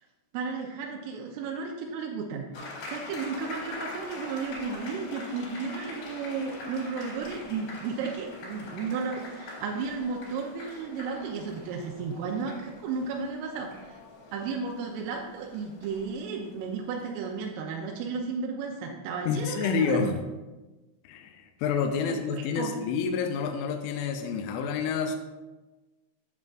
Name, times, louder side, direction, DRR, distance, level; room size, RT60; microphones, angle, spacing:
voice 1, 0.3-14.0 14.3-20.1 22.0-22.8, right 5 dB, 85° right, 0 dB, 3.3 m, -34 dB
sound 1, 2.5-17.5, left 2 dB, 65° left, 4.9 m, -44 dB
voice 2, 19.3-20.2 21.0-25.2, left 5 dB, 80° left, 4 dB, 2.8 m, -28 dB
10.5 x 7.6 x 2.5 m, 1.1 s
omnidirectional pair, 5.8 m